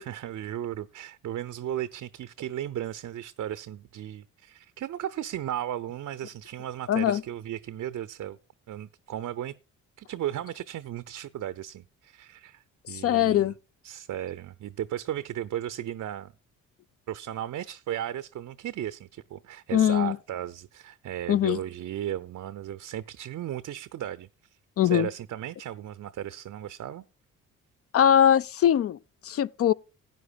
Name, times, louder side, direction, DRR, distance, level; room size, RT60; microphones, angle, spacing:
voice 1, 0.0-8.4 8.7-9.5 10.0-13.5 13.8-16.3 17.1-24.3 24.8-27.0, right 11 dB, 45° right, 0.6 m, -35 dB
voice 2, 6.9-7.2 12.9-13.5 19.7-20.2 21.3-21.6 24.8-25.1 27.9-29.0 29.2-29.7, left 10 dB, 35° left, 0.4 m, -21 dB
17.5 x 9.4 x 2.3 m
hypercardioid pair, 45°, 40 cm